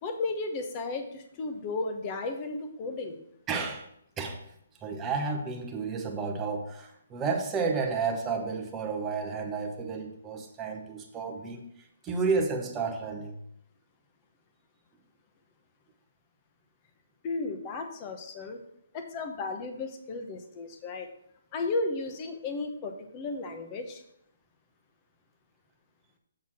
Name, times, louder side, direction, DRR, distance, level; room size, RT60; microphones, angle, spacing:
voice 1, 0.0-3.2 17.2-18.6 18.9-21.1 21.5-24.0, left 3 dB, 20° left, 6 dB, 0.9 m, -34 dB
voice 2, 3.5-3.9 4.2-4.4 4.8-13.4, right 4 dB, 10° right, 2 dB, 0.9 m, -31 dB
7.6 x 4.1 x 6.0 m, 0.74 s
hypercardioid pair, 165°, 0 cm